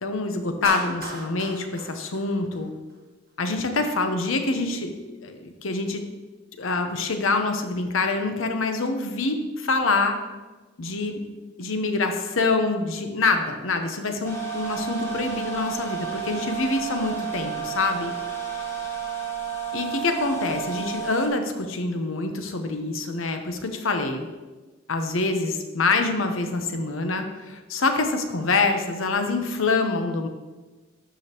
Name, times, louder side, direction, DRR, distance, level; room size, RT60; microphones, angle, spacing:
voice 1, 0.0-2.7 3.4-4.9 5.2-6.0 6.6-10.2 10.8-11.2 11.6-18.1 19.7-24.3 24.9-30.3, left 3 dB, 90° left, 6 dB, 0.8 m, -25 dB
Clapping, 0.6-2.9, right 2 dB, 50° right, 1.2 m, -36 dB
sound 1, 14.2-21.3, right 8 dB, 15° left, 1.0 m, -32 dB
12.0 x 5.0 x 2.9 m, 1.2 s
head